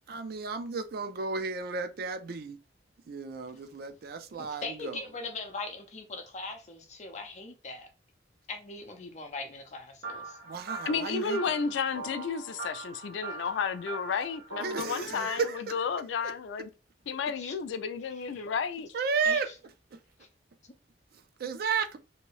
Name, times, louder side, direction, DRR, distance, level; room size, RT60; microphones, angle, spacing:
voice 1, 0.1-2.6 3.1-5.0 10.4-11.6 14.6-15.9 16.2-16.3 18.9-19.5 19.9-20.0 21.4-22.0, right 5 dB, 55° right, 0.4 m, -33 dB
voice 2, 4.4-7.9 8.5-10.4 15.0-15.3 17.4-17.5 18.3-18.5 19.2-19.4, left 3 dB, 40° left, 0.6 m, -40 dB
sound 1, 10.0-14.8, right 3 dB, 75° right, 1.2 m, -42 dB
voice 3, 10.9-16.7 17.1-18.9, left 6 dB, 80° left, 0.3 m, -32 dB
2.8 x 2.6 x 3.0 m
head